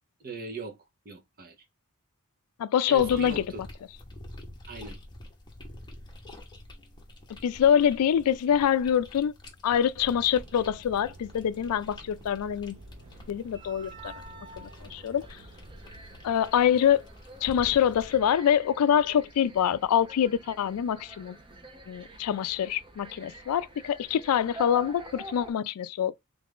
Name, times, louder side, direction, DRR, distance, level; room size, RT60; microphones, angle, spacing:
voice 1, 0.2-0.8 1.0-1.6 2.9-3.6 4.7-5.0, right 3 dB, 40° right, 0.8 m, -39 dB
voice 2, 2.6-3.4 7.4-9.3 9.6-12.8 13.3-14.1 14.6-15.3 16.2-17.0 17.4-21.4 21.9-26.1, left 9 dB, 80° left, 0.3 m, -25 dB
sound 1, 3.0-18.2, left 1 dB, 20° left, 0.8 m, -48 dB
sound 2, 9.9-16.3, right 2 dB, 75° right, 0.6 m, -51 dB
sound 3, 13.0-25.5, right 1 dB, 20° right, 0.5 m, -47 dB
3.3 x 2.5 x 3.5 m
head